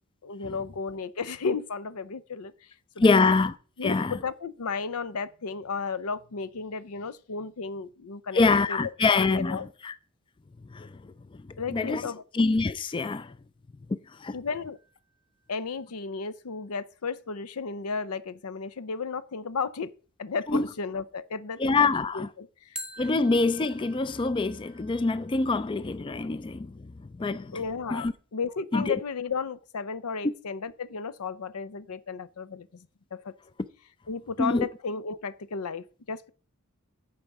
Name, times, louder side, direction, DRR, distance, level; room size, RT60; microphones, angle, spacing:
voice 1, 0.2-2.5 3.0-3.2 3.8-8.4 8.7-8.9 9.3-9.7 11.6-12.2 14.3-14.8 15.5-19.9 20.2-22.8 27.5-33.3 34.1-36.3, left 5 dB, 85° left, 0.6 m, -34 dB
voice 2, 3.0-3.5 3.8-4.2 8.3-9.6 9.8-9.9 10.7-10.9 11.7-12.0 12.3-13.3 14.2-14.3 20.5-20.6 21.6-22.3 23.0-26.9 27.2-27.6 27.9-28.1 28.7-28.9 34.4-34.7, left 3 dB, 20° left, 0.3 m, -25 dB
sound 1, 14.7-15.7 22.7-25.7, right 1 dB, 5° right, 1.0 m, -46 dB
14.0 x 4.8 x 4.7 m
head